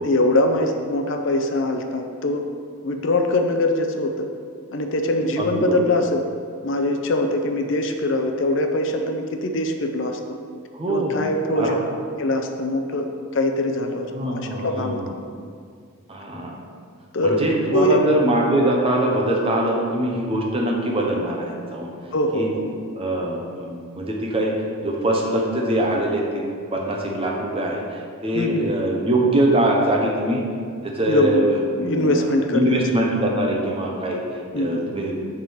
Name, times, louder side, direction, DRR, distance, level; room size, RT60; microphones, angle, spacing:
voice 1, 0.0-2.4 2.8-4.3 4.7-6.2 6.6-10.4 10.9-11.8 12.2-13.1 13.3-15.0 17.1-17.5 17.7-18.0 22.1-22.7 28.3-28.7 31.1-32.8 34.5-34.9, left 1 dB, 55° left, 5 dB, 0.5 m, -22 dB
voice 2, 5.4-5.9 10.7-11.2 11.5-11.8 14.1-15.1 16.1-16.6 17.2-21.9 22.3-22.5 22.9-24.5 24.8-26.4 26.7-30.4 30.8-34.2 34.5-35.2, right 1 dB, 25° right, -1 dB, 0.8 m, -23 dB
7.2 x 3.7 x 6.4 m, 2.2 s
head